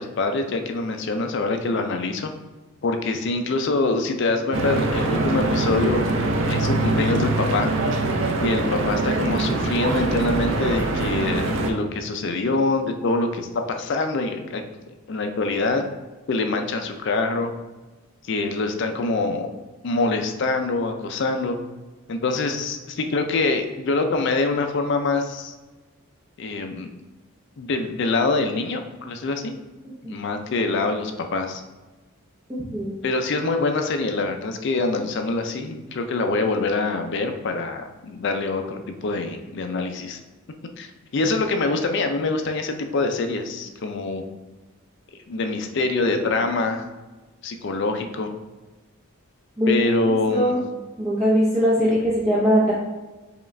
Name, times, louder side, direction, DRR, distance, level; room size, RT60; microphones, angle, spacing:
voice 1, 0.0-2.3 2.8-6.1 6.5-7.7 8.4-14.6 15.1-15.9 16.3-17.5 18.2-19.5 19.8-21.6 22.1-25.5 26.4-26.9 27.6-29.6 30.0-31.6 33.0-40.2 40.8-44.2 45.3-46.9 47.4-48.3 49.7-50.6 51.9-52.0, left 3 dB, 55° left, 5 dB, 0.4 m, -25 dB
Stream / Boat Water vehicle, 4.5-11.7, right 2 dB, 55° right, 0.4 m, -23 dB
voice 2, 32.5-32.9 49.6-49.7 50.3-50.6 51.0-52.7, equal, 15° right, -9 dB, 0.7 m, -20 dB
4.8 x 2.4 x 3.2 m, 1.2 s
head